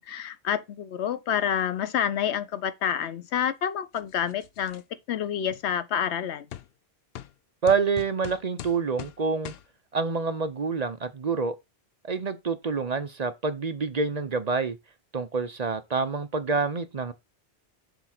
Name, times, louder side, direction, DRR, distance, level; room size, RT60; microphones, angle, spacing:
voice 1, 0.0-6.5, left 9 dB, 85° left, 1.0 m, -28 dB
sound 1, 3.9-4.8 5.5-5.6 6.5-6.7 7.2-7.3 7.7-9.2 9.5-9.7, left 11 dB, 65° left, 0.8 m, -41 dB
voice 2, 7.6-9.5 9.9-11.6 12.0-14.8 15.1-17.1, right 5 dB, 45° right, 0.7 m, -27 dB
7.0 x 3.6 x 5.8 m
omnidirectional pair, 1.1 m